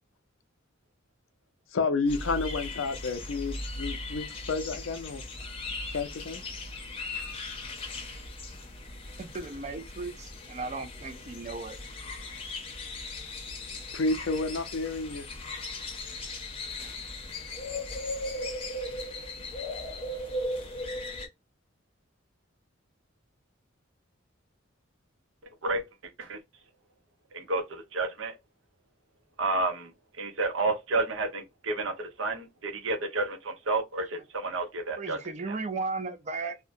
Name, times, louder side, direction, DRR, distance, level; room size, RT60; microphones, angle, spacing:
voice 1, 1.7-5.2 5.9-6.4 13.9-15.3, left 3 dB, 70° left, 0.5 m, -30 dB
sound 1, 2.1-21.3, left 2 dB, 25° left, 0.7 m, -38 dB
voice 2, 9.2-11.8 34.1-34.2 35.0-36.6, right 3 dB, 35° right, 0.4 m, -36 dB
voice 3, 27.3-28.3 29.4-29.9 30.2-35.2 35.5-35.6, right 2 dB, 65° right, 0.7 m, -30 dB
2.7 x 2.1 x 2.5 m
head